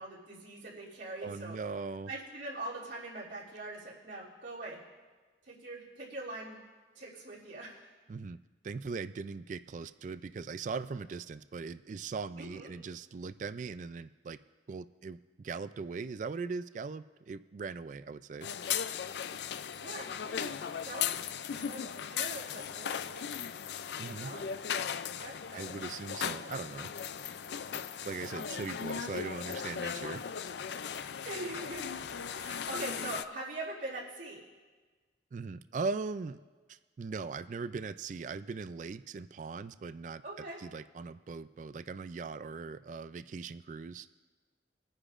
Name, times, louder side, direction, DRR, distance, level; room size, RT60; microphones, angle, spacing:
voice 1, 0.0-1.6 2.1-4.8 5.4-6.6 6.9-7.9 12.4-12.7 19.8-21.1 21.5-21.8 22.1-23.2 23.9-24.4 25.2-25.9 26.4-26.6 31.2-31.9 32.3-34.4 40.2-40.6, right 2 dB, 80° right, -8 dB, 3.0 m, -43 dB
voice 2, 1.2-2.1 8.1-8.4 8.6-14.4 14.7-18.5 24.0-24.3 25.5-26.9 28.0-30.2 35.3-36.4 36.7-40.2 40.6-44.1, right 4 dB, 40° right, 13 dB, 0.3 m, -40 dB
sound 1, 18.4-33.2, left 8 dB, 65° left, 0.4 m, -37 dB
24.5 x 9.8 x 2.5 m, 1.3 s
head